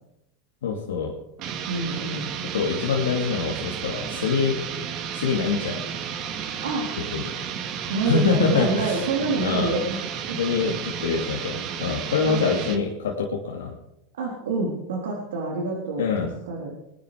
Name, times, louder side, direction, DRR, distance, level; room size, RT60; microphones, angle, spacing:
voice 1, 0.6-1.1 2.5-4.6 5.1-5.8 7.1-7.3 8.1-9.0 9.4-9.7 10.4-13.7 16.0-16.3, left 5 dB, 90° left, 0 dB, 2.6 m, -25 dB
sound 1, 1.4-12.9, right 7 dB, 50° right, 2.4 m, -32 dB
voice 2, 1.7-2.3 6.6-6.9 7.9-10.0 10.3-10.5 12.2-12.5 14.2-16.7, right 3 dB, 85° right, -2 dB, 3.8 m, -27 dB
21.5 x 11.0 x 5.2 m, 0.86 s
hypercardioid pair, 105°, 0 cm